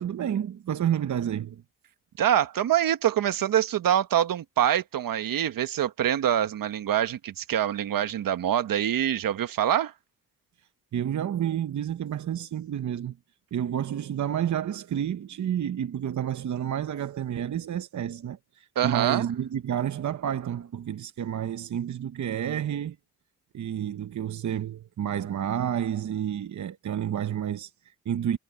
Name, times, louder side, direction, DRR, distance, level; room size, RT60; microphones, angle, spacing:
voice 1, 0.0-1.6 10.9-13.2 13.5-23.0 23.5-28.4, right 9 dB, 55° right, 0.9 m, -30 dB
voice 2, 2.2-9.9 18.7-19.3, right 10 dB, 75° right, 1.3 m, -25 dB
cardioid pair, 70°, 34 cm